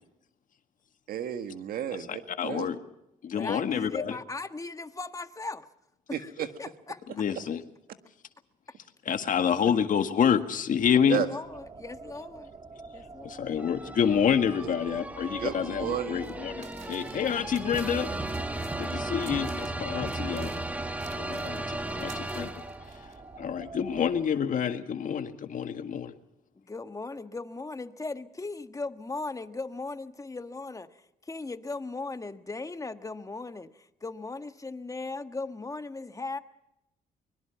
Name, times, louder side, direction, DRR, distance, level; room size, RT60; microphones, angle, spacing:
voice 1, 1.1-2.7 6.1-6.5 11.1-11.3 14.6-14.7 15.4-16.2, right 9 dB, 80° right, 1.8 m, -32 dB
voice 2, 2.1-2.8 3.2-4.2 7.2-7.6 9.1-11.2 13.2-18.1 18.8-20.6 21.1-22.5 23.0-23.1 23.4-26.1, left 8 dB, 65° left, 1.8 m, -28 dB
voice 3, 3.3-5.7 6.1-7.2 11.0-12.5 12.9-13.5 26.6-36.4, left 3 dB, 20° left, 1.4 m, -38 dB
sound 1, 11.4-24.3, right 3 dB, 35° right, 2.0 m, -47 dB
sound 2, 13.6-23.1, right 1 dB, 10° right, 1.7 m, -36 dB
sound 3, 16.2-16.3 16.6-19.7 20.0-23.1, right 5 dB, 50° right, 3.3 m, -53 dB
24.0 x 22.0 x 6.0 m
cardioid pair, 80°, 15 cm